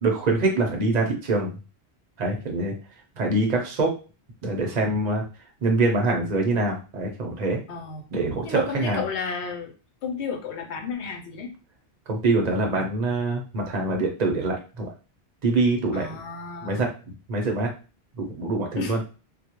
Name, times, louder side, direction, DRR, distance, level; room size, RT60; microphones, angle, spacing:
voice 1, 0.0-1.6 2.2-2.7 3.2-3.9 4.4-5.2 5.6-7.6 8.1-9.0 12.1-14.9 15.4-16.2 16.6-17.7 18.2-19.0, right 2 dB, 45° right, 1 dB, 0.7 m, -24 dB
voice 2, 7.7-8.0 8.4-9.7 10.0-11.5 15.9-16.8 18.7-19.0, left 5 dB, 75° left, 3 dB, 0.9 m, -32 dB
2.3 x 2.1 x 2.8 m, 0.33 s
omnidirectional pair, 1.1 m